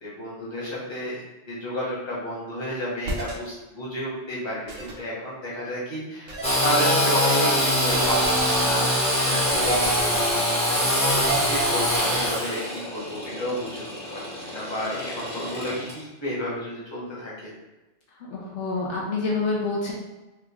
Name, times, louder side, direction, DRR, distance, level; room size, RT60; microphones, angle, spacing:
voice 1, 0.0-1.2 1.5-8.9 9.2-10.6 11.3-12.6 12.9-17.5, equal, 25° left, -8 dB, 1.1 m, -31 dB
sound 1, 3.0-3.3 4.7-4.9 6.3-6.6 7.9-8.7 9.5-10.3 11.1-12.3, right 4 dB, 80° right, 1.0 m, -31 dB
Engine / Sawing, 6.4-15.9, left 1 dB, 5° left, 0.7 m, -24 dB
voice 2, 18.2-19.9, left 3 dB, 70° left, -3 dB, 0.9 m, -27 dB
3.8 x 2.3 x 2.9 m, 1.1 s
omnidirectional pair, 1.3 m